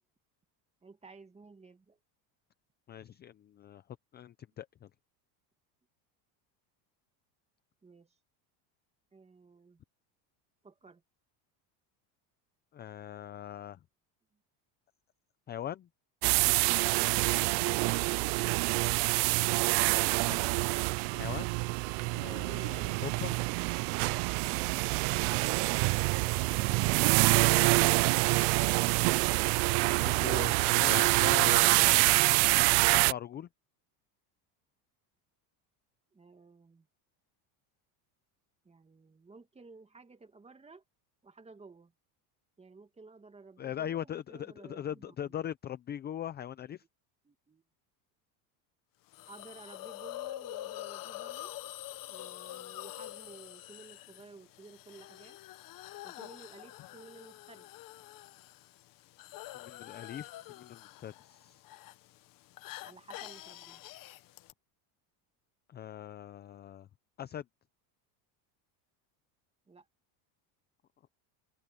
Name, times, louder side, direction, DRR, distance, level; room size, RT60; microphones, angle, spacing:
voice 1, 0.8-2.0 7.8-8.2 9.1-9.8 10.6-11.0 21.1-21.3 36.1-36.9 38.6-40.8 41.2-41.9 42.6-45.3 47.2-47.6 49.2-51.5 52.1-55.4 56.0-57.7 62.8-63.8 69.7-69.9, right 3 dB, 15° right, 2.3 m, -54 dB
voice 2, 2.9-3.8 4.1-4.9 12.7-13.8 15.5-15.9 20.3-20.4 21.0-21.5 22.1-23.3 28.5-29.6 30.0-32.1 32.9-33.5 43.6-46.8 59.5-61.6 65.7-66.9 67.2-67.4, left 10 dB, 20° left, 0.5 m, -41 dB
sound 1, 16.2-33.1, right 28 dB, 60° right, 0.5 m, -26 dB
Hiss, 49.1-64.5, left 16 dB, 45° left, 1.0 m, -46 dB
open air
cardioid pair, 145°, 48 cm